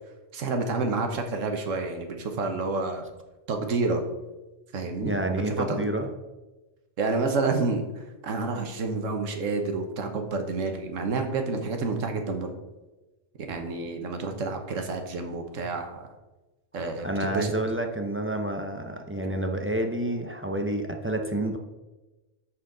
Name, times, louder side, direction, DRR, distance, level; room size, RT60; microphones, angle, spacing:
voice 1, 0.3-3.0 3.5-4.0 4.7-5.9 7.0-7.8 8.2-12.5 13.5-16.1 16.7-17.5, right 3 dB, 85° right, 5 dB, 1.4 m, -29 dB
voice 2, 5.0-6.1 16.8-21.6, right 1 dB, 15° right, 3 dB, 0.4 m, -29 dB
12.5 x 4.4 x 3.8 m, 1.1 s
omnidirectional pair, 1.3 m